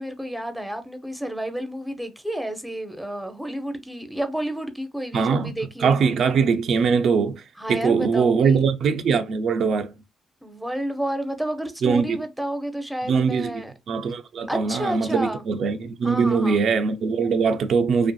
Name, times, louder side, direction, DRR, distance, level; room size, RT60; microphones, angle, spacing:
voice 1, 0.0-6.0 7.6-8.6 10.4-13.7 14.5-15.4 16.0-16.6, right 1 dB, ahead, 0.5 m, -30 dB
voice 2, 5.1-5.5 5.8-7.4 7.7-10.0 11.8-12.2 13.0-18.1, right 5 dB, 65° right, 0.3 m, -22 dB
2.6 x 2.4 x 2.2 m
cardioid pair, 95°, 0 cm